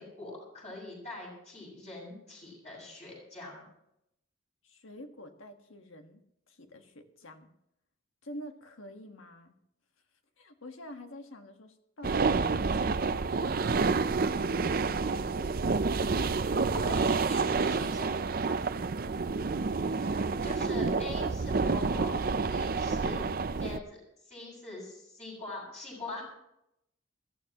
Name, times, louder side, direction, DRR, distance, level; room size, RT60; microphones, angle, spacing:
voice 1, 0.0-3.6 16.7-18.1 19.9-26.3, left 2 dB, 35° left, -2 dB, 7.0 m, -43 dB
voice 2, 4.6-6.2 6.5-7.5 8.2-9.5 10.4-13.6 14.3-15.5 16.4-16.8 18.4-18.7, left 1 dB, 85° left, 5 dB, 1.6 m, -48 dB
sound 1, 12.0-23.8, right 4 dB, 45° right, 0.5 m, -29 dB
22.0 x 14.5 x 3.0 m, 0.80 s
head